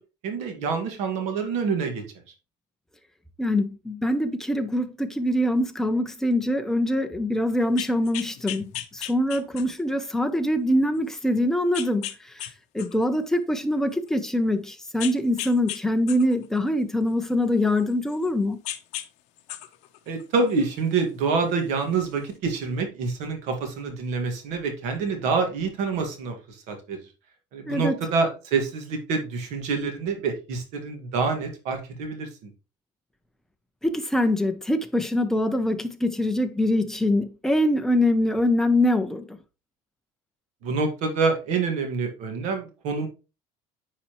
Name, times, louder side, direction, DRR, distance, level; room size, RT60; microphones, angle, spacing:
voice 1, 0.2-2.0 20.1-27.0 27.5-32.5 40.6-43.1, right 4 dB, 65° right, 1.8 m, -27 dB
voice 2, 3.4-12.5 12.7-18.6 27.7-28.0 33.8-39.4, left 1 dB, 5° left, 0.6 m, -24 dB
sound 1, 7.6-9.9 10.5-10.6 11.7-12.5 12.8-14.1 15.0-15.8 16.1-18.3 18.6-19.1 19.4-20.8 21.8-21.9, left 13 dB, 60° left, 0.8 m, -36 dB
9.9 x 4.2 x 3.0 m
cardioid pair, 165°, 13 cm